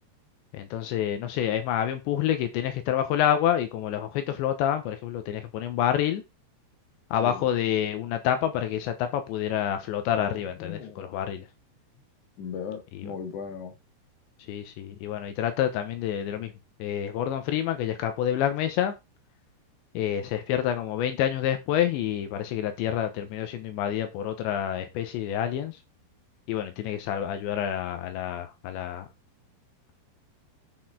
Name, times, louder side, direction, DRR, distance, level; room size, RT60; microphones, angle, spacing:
voice 1, 0.5-6.2 7.1-11.5 12.9-13.1 14.5-16.5 16.8-18.9 20.0-25.8 26.5-29.1, left 10 dB, 80° left, 3.4 m, -28 dB
voice 2, 10.1-11.2 12.4-13.7, left 7 dB, 50° left, 3.2 m, -38 dB
10.0 x 6.7 x 3.9 m
omnidirectional pair, 5.2 m